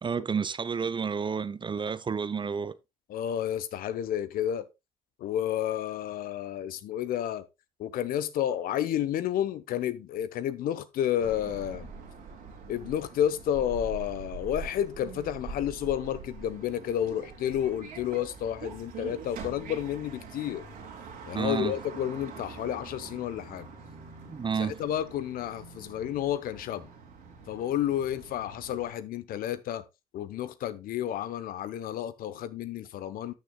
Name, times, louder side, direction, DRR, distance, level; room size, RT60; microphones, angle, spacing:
voice 1, 0.0-2.7 21.3-21.7 24.3-24.8, right 6 dB, 30° right, 0.7 m, -30 dB
voice 2, 3.1-4.7 5.2-7.4 7.8-11.9 12.7-20.6 21.3-23.7 24.6-26.9 27.5-29.8 30.1-33.3, left 10 dB, 60° left, 1.0 m, -31 dB
sound 1, 11.2-28.9, right 5 dB, 60° right, 3.0 m, -44 dB
13.0 x 6.4 x 2.3 m
hypercardioid pair, 60°, 17 cm